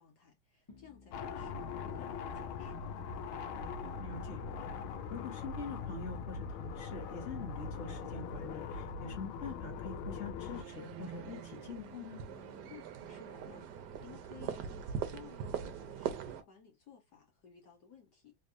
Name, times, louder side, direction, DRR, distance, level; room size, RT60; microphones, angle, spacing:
voice 1, 0.0-2.8 12.7-18.3, left 7 dB, 60° left, 1.4 m, -57 dB
sound 1, 0.7-2.1 2.8-6.0 8.4-9.8 10.6-13.8, left 3 dB, 15° left, 1.1 m, -57 dB
sound 2, 1.1-10.6, left 5 dB, 85° left, 1.4 m, -41 dB
voice 2, 4.0-4.4 5.1-12.2, left 5 dB, 40° left, 1.1 m, -44 dB
sound 3, 10.5-16.4, right 8 dB, 65° right, 1.1 m, -42 dB
3.4 x 3.2 x 2.5 m
omnidirectional pair, 2.2 m